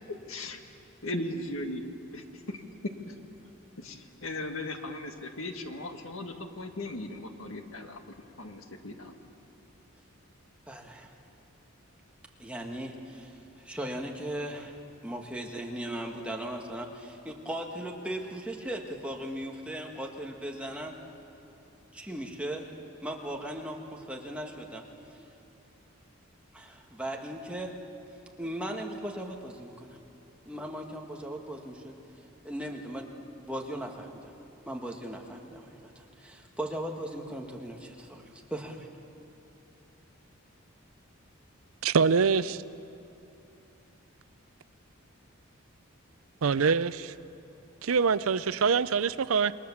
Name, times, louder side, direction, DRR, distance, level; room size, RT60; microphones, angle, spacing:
voice 1, 0.1-0.6 1.0-2.6 3.1-3.2 3.8-8.0 8.4-9.1, left 1 dB, 75° left, 5 dB, 1.8 m, -38 dB
voice 2, 10.7-11.1 12.4-13.3 13.6-14.8 15.0-20.9 21.9-22.7 23.0-24.8 26.5-27.7 28.4-30.0 30.4-31.9 32.4-33.1 33.4-34.3 34.7-38.9, right 1 dB, 5° right, 1 dB, 1.6 m, -38 dB
voice 3, 41.8-42.6 46.4-47.1 47.8-49.5, right 5 dB, 80° right, 16 dB, 0.5 m, -24 dB
28.5 x 21.0 x 7.3 m, 2.8 s
head